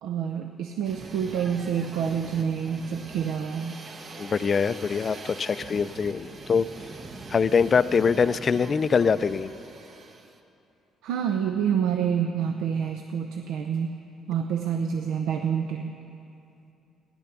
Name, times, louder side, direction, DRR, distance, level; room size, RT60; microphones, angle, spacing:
voice 1, 0.0-3.8 11.0-13.9 14.3-16.0, right 8 dB, 85° right, 5 dB, 0.6 m, -27 dB
sound 1, 0.8-10.4, right 3 dB, 40° right, 1.0 m, -42 dB
voice 2, 4.2-6.7 7.3-9.5, left 6 dB, 35° left, 15 dB, 0.4 m, -23 dB
15.0 x 11.0 x 6.0 m, 2.7 s
cardioid pair, 115°, 0 cm